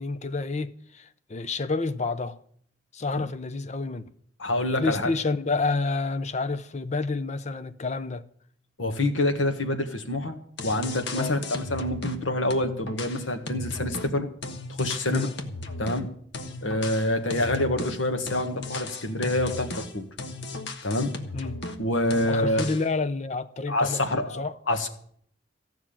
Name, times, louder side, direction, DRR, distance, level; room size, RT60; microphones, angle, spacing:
voice 1, 0.0-2.4 2.9-4.1 4.8-8.2 11.1-11.4 15.1-15.3 16.4-16.6 21.3-21.6 22.2-24.5, left 3 dB, 35° left, 0.6 m, -29 dB
voice 2, 4.4-5.1 8.8-10.4 10.6-14.3 14.7-15.3 15.8-16.1 16.6-20.1 20.8-21.1 21.8-22.7 23.7-24.9, left 1 dB, 90° left, 1.6 m, -26 dB
sound 1, 10.3-10.4 10.6-12.2 12.5-16.0 16.3-21.8 22.1-22.9, left 2 dB, 60° left, 1.3 m, -36 dB
15.0 x 6.0 x 8.8 m
head